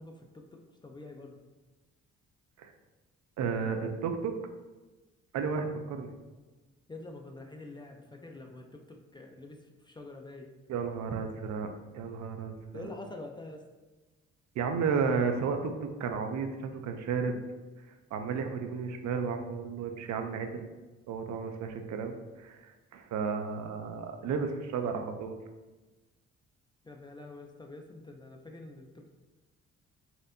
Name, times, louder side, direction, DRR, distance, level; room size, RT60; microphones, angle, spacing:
voice 1, 0.0-1.4 6.9-10.5 12.7-13.7 26.8-29.1, left 2 dB, 15° left, 2 dB, 0.4 m, -46 dB
voice 2, 3.4-4.4 5.3-6.1 10.7-11.7 11.9-12.9 14.6-17.4 18.1-20.7 21.1-25.3, right 5 dB, 65° right, 5 dB, 0.5 m, -33 dB
4.2 x 2.6 x 2.5 m, 1.2 s
cardioid pair, 90°, 30 cm